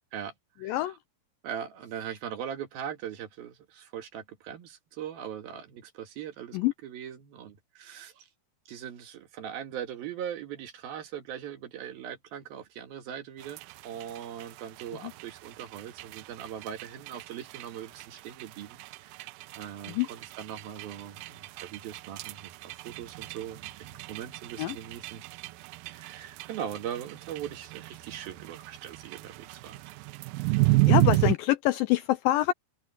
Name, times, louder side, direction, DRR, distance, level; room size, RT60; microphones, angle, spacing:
voice 1, 0.1-1.0 1.4-8.3 8.7-19.3 19.6-25.2 25.9-29.8, right 9 dB, 70° right, 3.5 m, -40 dB
voice 2, 0.6-1.0 6.5-6.7 15.0-15.1 19.9-20.1 24.6-24.8 30.7-32.5, left 16 dB, 85° left, 2.0 m, -26 dB
sound 1, 13.4-31.4, right 21 dB, 90° right, 2.0 m, -33 dB
omnidirectional pair, 4.6 m